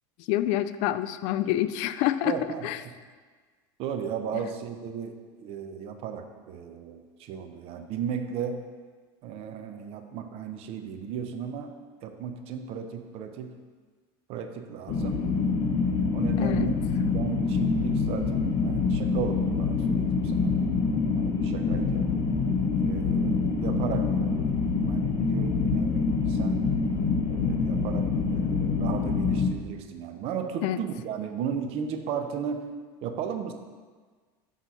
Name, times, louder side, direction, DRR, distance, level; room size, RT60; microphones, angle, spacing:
voice 1, 0.3-2.4 2.6-2.8 4.3-4.5 16.4-16.7 25.7-26.0 30.6-30.8, left 13 dB, 60° left, 13 dB, 0.4 m, -27 dB
voice 2, 2.3-2.7 3.8-8.6 9.2-11.7 12.0-13.5 14.3-15.3 16.1-16.8 17.1-20.7 21.2-22.1 22.8-24.5 24.8-26.6 27.3-32.7 33.0-33.5, right 7 dB, 55° right, 7 dB, 0.7 m, -35 dB
sound 1, 14.9-29.5, left 4 dB, 45° left, 1.1 m, -26 dB
6.3 x 4.0 x 5.5 m, 1.5 s
supercardioid pair, 120°, 13 cm